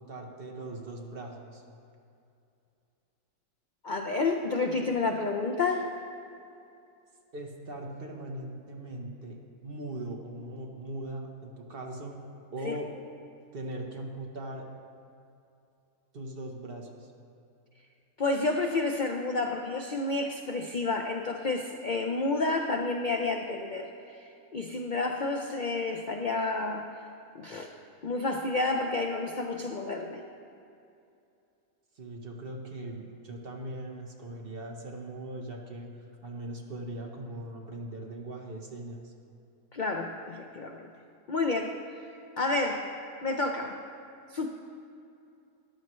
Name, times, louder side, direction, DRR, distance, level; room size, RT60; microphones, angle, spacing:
voice 1, 0.0-1.6 7.3-9.4 9.6-12.2 12.5-12.9 13.5-14.7 16.1-17.1 31.9-35.9 36.2-39.1, right 1 dB, 45° right, 1 dB, 1.1 m, -40 dB
voice 2, 3.8-5.9 12.6-12.8 18.2-23.9 24.5-26.9 27.3-27.7 28.0-30.2 39.7-40.9 41.3-41.8 42.4-42.9 43.2-43.8 44.3-44.5, left 3 dB, 75° left, 3 dB, 0.4 m, -30 dB
14.0 x 10.5 x 3.1 m, 2.6 s
omnidirectional pair, 1.6 m